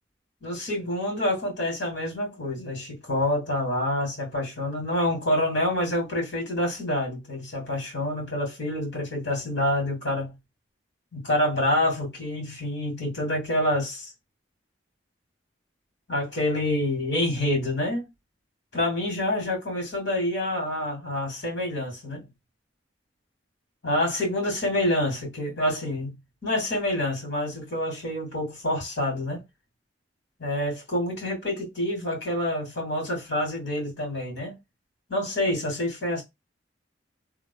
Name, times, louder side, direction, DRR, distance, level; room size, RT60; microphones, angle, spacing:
voice 1, 0.4-10.3 11.1-14.1 16.1-18.1 18.7-22.3 23.8-26.1 26.4-29.4 30.4-34.5 35.1-36.2, left 1 dB, 60° left, 2.0 m, -27 dB
3.1 x 2.2 x 3.7 m
head